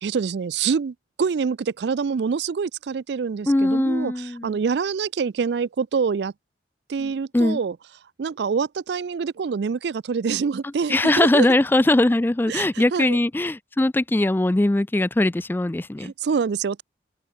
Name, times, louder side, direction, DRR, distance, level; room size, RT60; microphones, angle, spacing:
voice 1, 0.0-6.3 6.9-7.8 8.2-11.5 12.5-13.2 16.0-16.8, right 5 dB, 65° right, 0.4 m, -26 dB
voice 2, 3.5-4.5 7.0-7.6 10.9-16.1, left 1 dB, 10° left, 0.3 m, -21 dB
open air
head